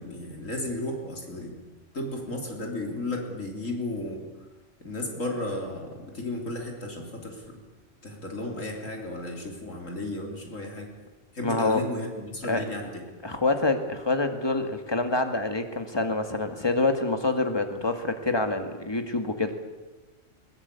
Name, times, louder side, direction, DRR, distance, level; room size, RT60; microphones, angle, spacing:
voice 1, 0.0-1.6 1.9-4.3 4.8-7.5 8.0-10.9 11.3-13.1, left 1 dB, 75° left, 1 dB, 3.8 m, -34 dB
voice 2, 11.4-11.8 12.5-12.6 13.2-19.5, left 2 dB, 20° left, 6 dB, 2.0 m, -26 dB
21.0 x 20.0 x 8.4 m, 1.2 s
omnidirectional pair, 1.3 m